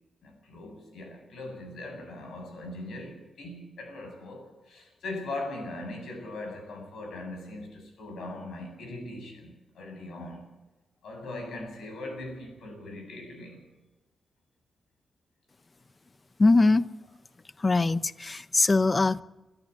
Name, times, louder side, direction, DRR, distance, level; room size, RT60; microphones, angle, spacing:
voice 1, 0.2-10.5 11.0-13.6, left 2 dB, 85° left, 4 dB, 7.7 m, -40 dB
voice 2, 16.4-16.9 17.6-19.2, left 3 dB, 30° left, 16 dB, 0.7 m, -22 dB
24.5 x 14.0 x 8.2 m, 1.1 s
wide cardioid pair, 110°, 0 cm